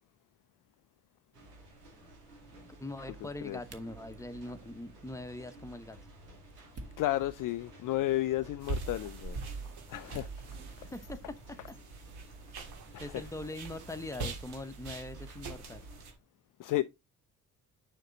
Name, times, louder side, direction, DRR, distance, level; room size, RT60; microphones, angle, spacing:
sound 1, 1.2-16.0, right 1 dB, 30° right, 1.8 m, -55 dB
sound 2, 1.3-16.1, right 2 dB, 85° right, 2.3 m, -54 dB
voice 1, 2.8-6.0 10.8-11.2 11.7-11.8 13.0-15.8, left 2 dB, 5° left, 1.0 m, -42 dB
voice 2, 7.0-9.4 9.9-10.3 10.8-10.9 12.9-13.0 16.6-16.8, left 15 dB, 45° left, 0.5 m, -32 dB
sound 3, 8.6-16.1, right 3 dB, 50° right, 2.2 m, -43 dB
6.6 x 6.0 x 3.9 m
figure-of-eight pair, 45°, 47 cm